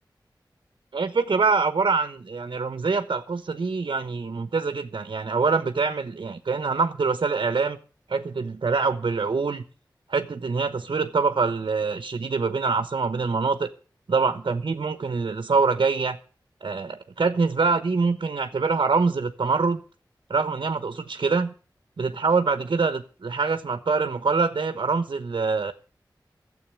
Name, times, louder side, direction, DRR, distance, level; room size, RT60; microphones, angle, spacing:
voice 1, 0.9-7.8 8.1-9.6 10.1-13.7 14.1-16.2 16.6-19.8 20.3-21.5 22.0-25.7, right 4 dB, 75° right, 1.0 m, -24 dB
12.5 x 7.9 x 9.0 m
cardioid pair, 40°, 8 cm